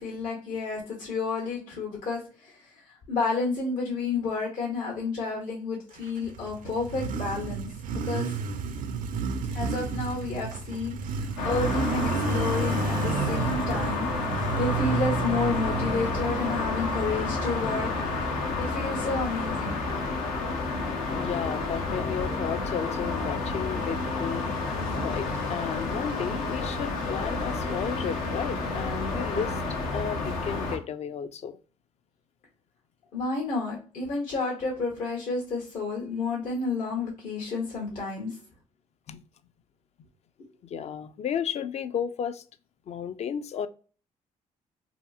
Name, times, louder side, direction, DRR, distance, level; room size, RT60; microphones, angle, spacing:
voice 1, 0.0-8.4 9.5-17.9 18.6-19.8 33.1-38.4, left 4 dB, 70° left, 1.0 m, -31 dB
Motorcycle, 6.1-18.7, right 5 dB, 70° right, 0.4 m, -32 dB
sound 1, 11.4-30.8, left 3 dB, 90° left, 0.6 m, -30 dB
voice 2, 21.2-24.7 25.0-29.6 29.9-31.6 39.1-39.2 40.6-42.4 42.9-43.7, left 8 dB, 50° left, 0.4 m, -33 dB
2.8 x 2.6 x 2.3 m
supercardioid pair, 70°, 14 cm